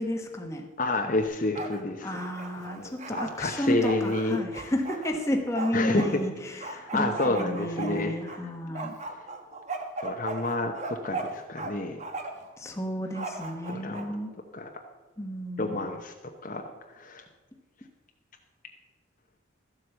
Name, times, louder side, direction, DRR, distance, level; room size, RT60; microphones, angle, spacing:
voice 1, 0.0-0.7 2.0-8.9 12.6-14.3 15.2-16.0, left 1 dB, 15° left, 3 dB, 1.2 m, -32 dB
voice 2, 0.8-2.1 2.8-4.4 5.7-6.2 6.7-8.1 10.0-12.0 13.7-14.0 14.5-14.7 15.6-16.1 16.4-16.6 16.9-17.2, left 2 dB, 40° left, 3 dB, 0.8 m, -29 dB
Bark, 1.2-1.8 2.1-6.1 6.6-8.4 8.7-11.7 12.0-12.5 13.1-14.1, right 3 dB, 35° right, 1.1 m, -37 dB
13.0 x 7.8 x 6.9 m, 1.2 s
head